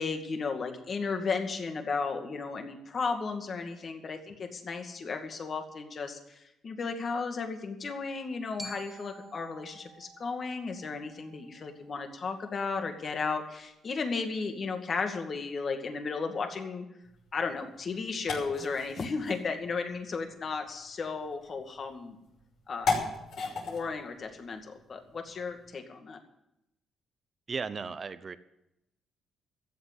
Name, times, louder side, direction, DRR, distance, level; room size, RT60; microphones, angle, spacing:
voice 1, 0.0-16.8 17.3-22.2 22.7-23.0 23.4-26.2, left 4 dB, 45° left, 5 dB, 2.2 m, -34 dB
Glockenspiel, 8.6-12.7, right 1 dB, 10° right, 1.5 m, -50 dB
sound 1, 17.0-25.7, left 4 dB, 75° left, 5.9 m, -38 dB
voice 2, 27.5-28.4, right 5 dB, 40° right, 13 dB, 0.8 m, -35 dB
14.0 x 8.0 x 9.7 m, 0.87 s
cardioid pair, 90°, 0 cm